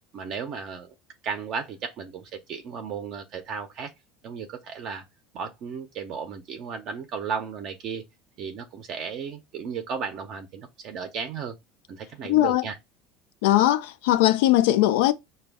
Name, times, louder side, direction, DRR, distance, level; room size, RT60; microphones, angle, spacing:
voice 1, 0.1-0.9 1.2-3.9 4.2-5.0 5.3-8.0 8.4-11.6 11.9-12.8, right 6 dB, 40° right, 0.5 m, -34 dB
voice 2, 12.3-12.6 13.4-15.1, left 14 dB, 85° left, 0.4 m, -20 dB
5.0 x 2.2 x 3.4 m
cardioid pair, 170°, 0 cm